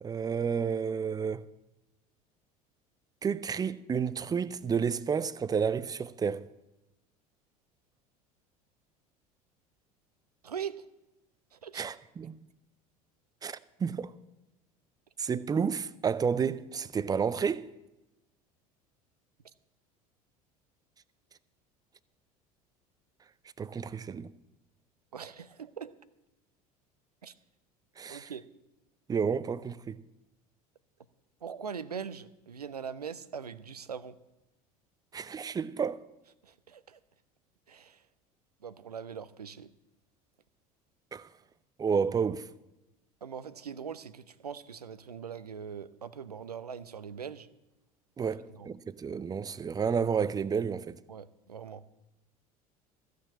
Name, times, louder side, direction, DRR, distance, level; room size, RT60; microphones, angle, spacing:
voice 1, 0.0-1.4 3.2-6.5 11.7-12.4 13.4-14.1 15.2-17.7 23.6-24.3 28.0-28.3 29.1-30.0 35.1-36.0 41.1-41.3 41.8-42.5 48.2-51.0, right 6 dB, 20° right, 0.5 m, -31 dB
voice 2, 10.4-10.9 11.5-11.9 25.1-25.9 27.2-27.3 28.1-28.4 31.4-34.2 36.4-37.0 37.7-38.0 38.6-39.7 43.2-47.5 48.2-48.7 51.1-51.8, right 7 dB, 80° right, 0.6 m, -41 dB
14.5 x 6.6 x 8.7 m
figure-of-eight pair, 70°, 20 cm